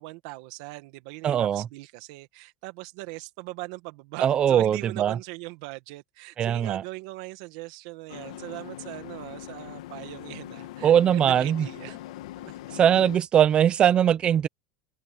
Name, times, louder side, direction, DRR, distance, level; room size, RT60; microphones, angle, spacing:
voice 1, 0.0-12.0 12.4-12.5, right 22 dB, 70° right, 1.8 m, -40 dB
voice 2, 1.2-1.6 4.2-5.2 6.4-6.8 10.8-11.7 12.7-14.5, right 9 dB, 30° right, 1.0 m, -21 dB
sound 1, 8.1-13.2, left 14 dB, 85° left, 1.6 m, -41 dB
open air
supercardioid pair, 140°, 3 cm